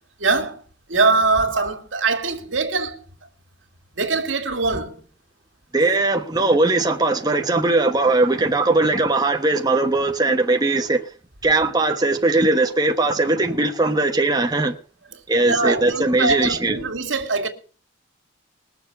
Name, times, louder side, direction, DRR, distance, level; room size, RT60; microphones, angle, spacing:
voice 1, 0.2-0.6 0.9-3.0 4.0-4.9 15.5-17.5, right 3 dB, 80° right, 2.4 m, -22 dB
voice 2, 5.7-11.0 11.4-14.7 15.3-16.8, right 2 dB, 20° right, 1.2 m, -19 dB
21.0 x 7.0 x 6.7 m
head